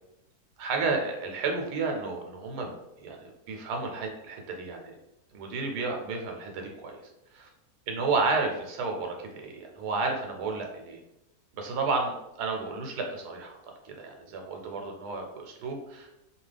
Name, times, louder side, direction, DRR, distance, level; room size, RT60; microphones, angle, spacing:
voice 1, 0.6-2.7 3.0-5.0 5.3-7.0 7.3-7.5 7.9-11.0 11.6-12.1 12.4-13.6 13.8-16.1, right 3 dB, 85° right, 2 dB, 1.1 m, -31 dB
2.8 x 2.4 x 3.2 m, 0.90 s
omnidirectional pair, 1.7 m